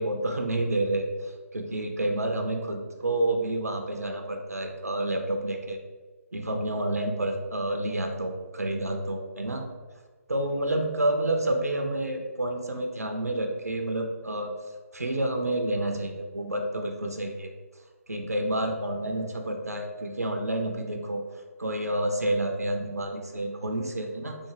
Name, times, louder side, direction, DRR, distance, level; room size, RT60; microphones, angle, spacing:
voice 1, 0.0-5.8 6.3-9.6 10.3-14.5 14.9-17.5 18.1-21.2 21.6-24.4, right 1 dB, 80° right, 3 dB, 0.4 m, -29 dB
3.5 x 2.0 x 3.2 m, 1.3 s
figure-of-eight pair, 140°, 8 cm